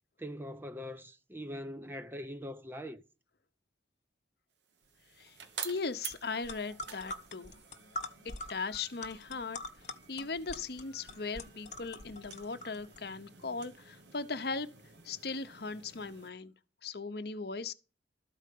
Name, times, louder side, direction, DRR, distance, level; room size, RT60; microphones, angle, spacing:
voice 1, 0.2-3.0, equal, 10° right, 0.7 m, -42 dB
sound 1, 4.6-16.3, right 7 dB, 75° right, 1.4 m, -50 dB
voice 2, 5.6-7.5 8.2-9.6 10.1-14.7 15.0-16.5 16.8-17.7, left 4 dB, 60° left, 0.8 m, -38 dB
sound 2, 6.1-6.2 6.4-13.0, left 2 dB, 40° left, 1.2 m, -44 dB
13.5 x 4.9 x 8.4 m
head